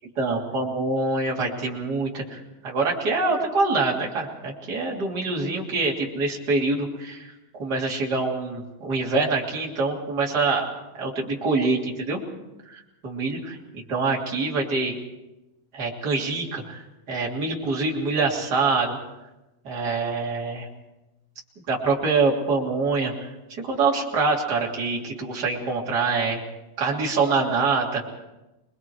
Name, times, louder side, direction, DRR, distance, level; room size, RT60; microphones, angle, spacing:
voice 1, 0.2-7.3 7.6-10.7 11.0-12.2 12.7-14.9 15.7-16.8 17.1-19.0 19.6-20.7 21.7-23.3 23.6-26.4 26.8-28.0, right 3 dB, 30° right, -3 dB, 3.2 m, -25 dB
27.0 x 21.0 x 4.7 m, 0.99 s
omnidirectional pair, 4.3 m